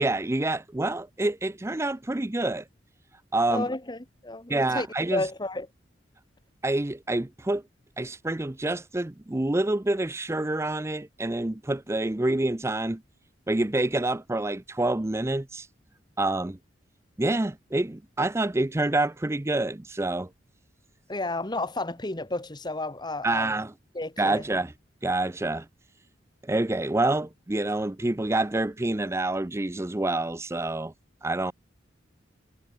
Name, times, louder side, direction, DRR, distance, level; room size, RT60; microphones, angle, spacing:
voice 1, 0.0-2.6 3.3-3.7 4.5-5.3 6.6-7.6 8.0-13.0 13.5-15.7 16.2-16.6 17.2-20.3 23.2-23.7 24.2-24.7 25.0-25.7 26.4-30.9 31.2-31.5, right 2 dB, 15° right, 0.5 m, -27 dB
voice 2, 3.5-5.7 21.1-23.5 24.0-24.4, left 2 dB, 25° left, 1.7 m, -32 dB
head